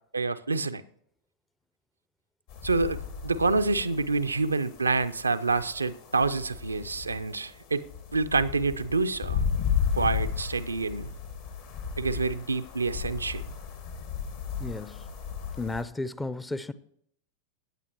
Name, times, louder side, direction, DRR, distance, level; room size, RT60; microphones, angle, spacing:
voice 1, 0.1-0.8 2.6-7.8 8.1-9.4 9.9-11.1 12.0-13.4, right 3 dB, 80° right, 0.4 m, -27 dB
sound 1, 2.5-15.8, left 7 dB, 50° left, 1.3 m, -34 dB
voice 2, 14.6-15.1 15.6-16.7, left 2 dB, 10° left, 0.5 m, -33 dB
17.0 x 8.5 x 2.9 m
figure-of-eight pair, 90°, 0 cm